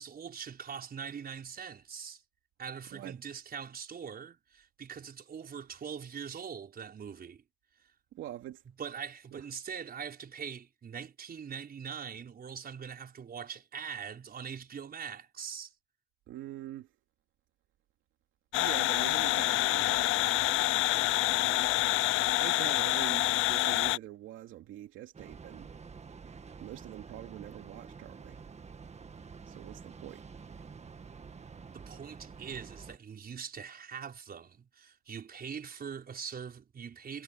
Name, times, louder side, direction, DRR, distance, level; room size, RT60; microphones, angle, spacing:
voice 1, 0.0-2.2 2.6-7.4 8.8-15.7 31.7-37.2, right 7 dB, 50° right, 5.3 m, -42 dB
voice 2, 8.1-8.6 9.3-9.4 16.3-16.9 18.6-21.9 22.4-25.7 26.6-28.4 29.5-30.3, right 13 dB, 90° right, 2.7 m, -44 dB
sound 1, 18.5-24.0, left 17 dB, 90° left, 0.5 m, -27 dB
Train, 25.1-33.0, right 5 dB, 35° right, 1.7 m, -48 dB
cardioid pair, 90°, 20 cm